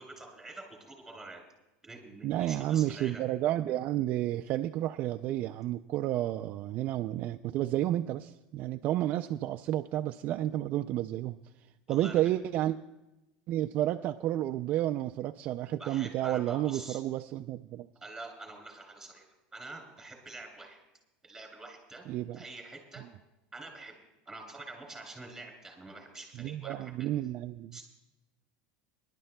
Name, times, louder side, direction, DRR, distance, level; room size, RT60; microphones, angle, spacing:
voice 1, 0.0-1.4 1.8-3.2 11.9-12.2 15.8-17.0 18.0-19.2 19.5-20.8 21.2-22.0 22.3-23.0 23.5-23.9 24.2-27.1 27.7-27.8, right 2 dB, 5° right, 2 dB, 2.9 m, -46 dB
voice 2, 2.2-11.4 11.9-12.8 13.5-17.9 22.1-22.4 23.0-23.1 26.3-27.8, right 13 dB, 40° right, 6 dB, 0.3 m, -31 dB
26.0 x 11.0 x 2.2 m, 0.98 s
supercardioid pair, 160°, 5 cm